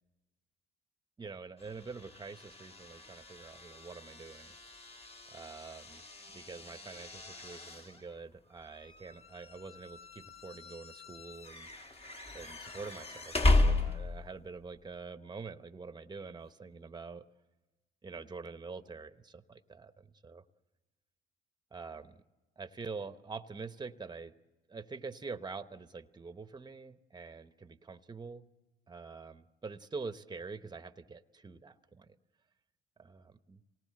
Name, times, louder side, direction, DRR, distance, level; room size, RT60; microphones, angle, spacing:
voice 1, 1.2-4.6 5.3-6.0 6.3-11.7 12.3-17.2 18.0-20.4 21.7-22.2 22.6-24.3 24.7-28.5 28.9-32.2 33.0-33.6, right 4 dB, 20° right, 11 dB, 0.9 m, -45 dB
sound 1, 1.6-14.4, left 2 dB, 30° left, 1.6 m, -35 dB
26.5 x 18.5 x 7.6 m, 1.2 s
cardioid pair, 90°, 20 cm